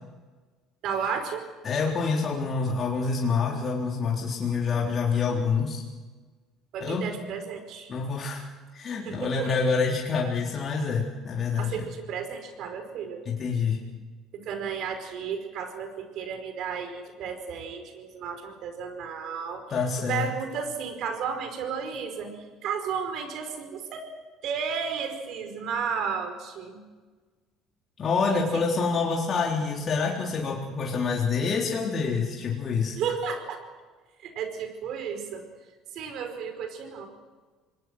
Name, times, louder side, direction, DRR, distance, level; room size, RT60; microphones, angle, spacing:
voice 1, 0.8-1.4 6.7-7.9 9.0-9.5 11.6-13.2 14.3-22.3 22.6-24.1 24.4-26.8 28.5-28.6 33.0-33.6 34.2-35.4 35.9-37.1, right 6 dB, 65° right, 7 dB, 4.9 m, -33 dB
voice 2, 1.6-5.8 6.8-7.1 7.9-8.4 8.7-11.9 13.3-13.8 19.7-20.3 28.0-33.0, left 5 dB, 45° left, -2 dB, 3.7 m, -27 dB
26.5 x 20.5 x 6.4 m, 1.4 s
supercardioid pair, 75°, 0 cm